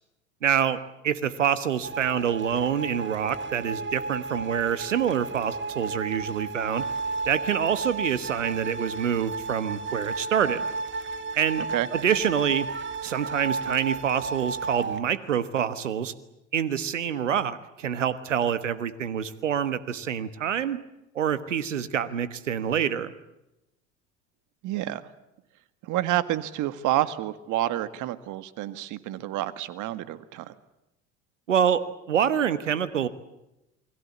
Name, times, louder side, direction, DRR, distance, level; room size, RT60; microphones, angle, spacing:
voice 1, 0.4-6.9 7.3-10.6 11.3-11.6 11.9-12.7 13.0-16.1 16.5-20.8 21.1-23.1 31.5-33.1, right 8 dB, 90° right, 13 dB, 1.4 m, -26 dB
sound 1, 1.8-15.0, right 3 dB, 30° right, 1.9 m, -33 dB
voice 2, 24.6-25.1 25.8-30.5, right 14 dB, 55° right, 12 dB, 1.9 m, -29 dB
29.0 x 22.0 x 8.4 m, 0.90 s
hypercardioid pair, 75°, 36 cm